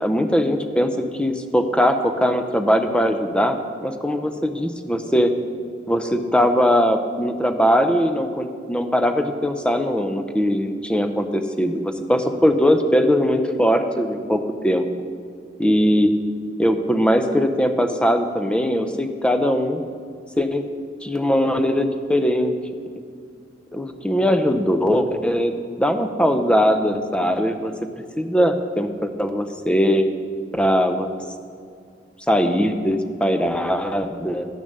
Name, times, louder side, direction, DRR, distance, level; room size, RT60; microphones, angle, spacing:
voice 1, 0.0-3.6 3.8-5.3 5.9-14.9 15.6-16.1 16.6-19.8 20.4-20.6 21.0-22.5 23.7-27.7 28.2-30.1 30.5-31.1 32.3-34.5, equal, 5° left, 7 dB, 0.5 m, -20 dB
10.5 x 6.7 x 6.6 m, 2.2 s
head